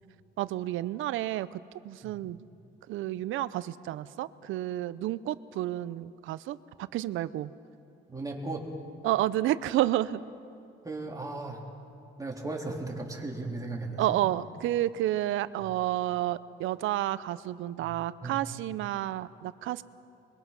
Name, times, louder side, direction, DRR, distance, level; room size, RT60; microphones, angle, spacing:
voice 1, 0.4-2.4 2.9-7.5 9.0-10.2 14.0-19.8, right 14 dB, 85° right, 16 dB, 0.6 m, -30 dB
voice 2, 8.1-8.7 10.8-11.6 12.2-14.2 17.8-17.9 18.2-18.4, right 2 dB, 15° right, -1 dB, 3.6 m, -36 dB
23.0 x 22.0 x 6.0 m, 2.5 s
cardioid pair, 90°, 20 cm